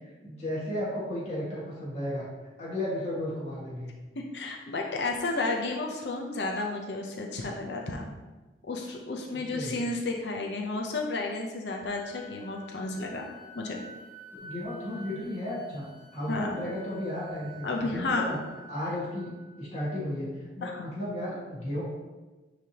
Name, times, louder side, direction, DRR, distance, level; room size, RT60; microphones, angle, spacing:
voice 1, 0.2-2.3 2.6-3.9 9.3-9.7 14.4-18.4 18.7-19.3 19.6-20.3 20.6-21.8, left 1 dB, 40° left, -8 dB, 1.8 m, -34 dB
voice 2, 4.3-8.1 8.7-13.3 13.5-13.8 16.3-16.6 17.6-18.3 20.6-20.9, left 3 dB, 75° left, 1 dB, 0.7 m, -32 dB
Wind instrument woodwind instrument, 11.9-19.6, right 1 dB, 30° right, 1.2 m, -50 dB
9.7 x 3.4 x 2.9 m, 1.2 s
head